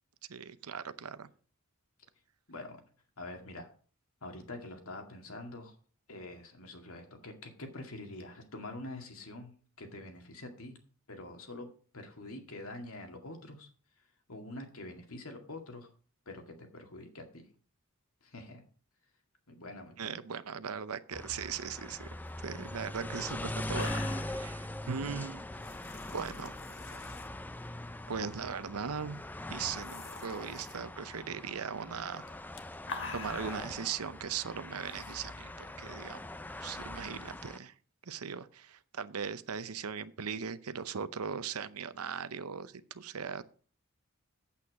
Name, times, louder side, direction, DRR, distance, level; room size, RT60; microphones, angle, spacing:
voice 1, 0.3-1.3 20.0-22.1 22.4-24.0 24.3-25.4 26.1-26.5 28.1-29.2 29.5-32.2 33.1-36.3 36.6-37.7 38.1-43.4, right 6 dB, 90° right, 14 dB, 0.7 m, -39 dB
voice 2, 2.5-2.8 3.2-3.7 4.2-5.8 6.1-10.8 11.1-13.7 14.0-15.9 16.3-17.5 18.2-18.6 19.5-20.2, left 2 dB, 75° left, 4 dB, 2.2 m, -46 dB
sound 1, 21.1-37.6, left 1 dB, 10° left, 0.3 m, -42 dB
sound 2, 22.8-22.9 23.3-23.4 23.6-24.5 25.6-27.3 28.2-28.5 28.8-28.9 29.6-30.8 32.2-33.8 34.9-35.1, left 4 dB, 55° left, 1.5 m, -45 dB
8.5 x 8.4 x 4.8 m, 0.42 s
head